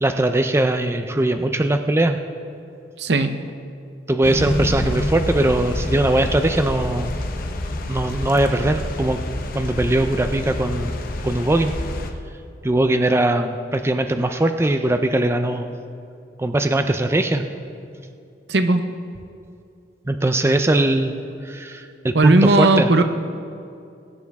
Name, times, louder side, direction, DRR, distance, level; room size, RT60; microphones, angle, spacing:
voice 1, 0.0-2.2 4.1-7.1 7.9-9.2 9.5-10.9 11.2-11.7 12.6-15.7 16.4-17.4 20.1-21.2 21.4-22.9, right 1 dB, 15° right, 7 dB, 0.5 m, -20 dB
voice 2, 3.0-3.3 18.5-18.8 22.1-23.0, right 2 dB, 70° right, 9 dB, 0.7 m, -16 dB
sound 1, 4.2-12.1, left 1 dB, 55° left, 0.9 m, -27 dB
21.5 x 9.5 x 3.5 m, 2.5 s
head